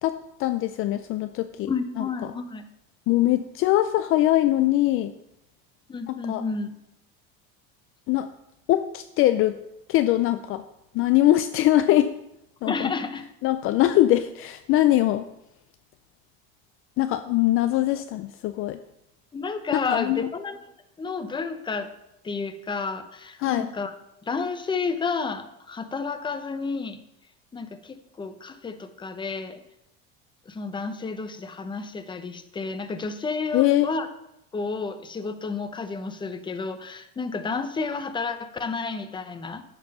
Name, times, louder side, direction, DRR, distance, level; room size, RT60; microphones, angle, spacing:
voice 1, 0.0-1.7 2.0-2.3 3.1-5.1 6.1-6.4 8.1-8.3 8.7-9.6 9.9-10.6 10.9-12.1 12.6-12.9 13.4-15.3 17.0-18.8 19.7-20.3 23.4-23.7 33.5-33.9, left 14 dB, 45° left, 11 dB, 0.4 m, -22 dB
voice 2, 1.7-2.6 5.9-6.7 12.7-13.2 19.3-20.7 21.0-21.9 22.2-23.9 24.2-27.0 27.5-29.6 30.5-34.1 34.5-39.6, left 4 dB, 15° left, 9 dB, 0.8 m, -31 dB
10.5 x 4.6 x 5.4 m, 0.84 s
supercardioid pair, 115°, 29 cm